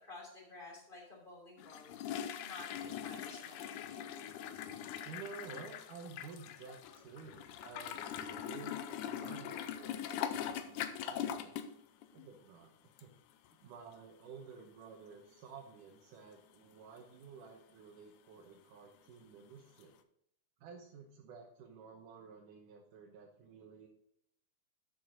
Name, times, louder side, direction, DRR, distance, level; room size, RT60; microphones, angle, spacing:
voice 1, 0.0-2.0 2.4-3.8, left 2 dB, 15° left, -3 dB, 3.0 m, -52 dB
sound 1, 1.6-11.8 12.0-12.3 13.0-13.1 13.5-13.6 19.8-19.9, left 9 dB, 80° left, 2.1 m, -42 dB
voice 2, 5.0-8.8 9.0-11.6 12.1-12.7 13.0-13.1 13.6-20.0 20.6-23.9, right 5 dB, 80° right, 0 dB, 2.6 m, -52 dB
12.5 x 6.2 x 3.9 m, 0.72 s
omnidirectional pair, 3.6 m